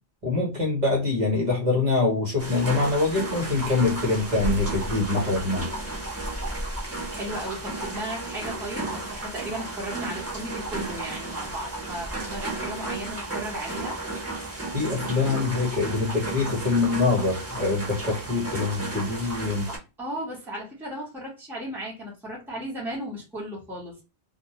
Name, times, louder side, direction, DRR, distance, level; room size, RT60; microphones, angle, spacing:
voice 1, 0.2-5.7 14.7-19.7, left 3 dB, 45° right, 0.9 m, -24 dB
sound 1, 2.4-19.8, right 2 dB, 20° right, 0.5 m, -33 dB
voice 2, 7.0-14.0 19.7-23.9, right 1 dB, ahead, 0.8 m, -35 dB
2.2 x 2.1 x 2.7 m
omnidirectional pair, 1.0 m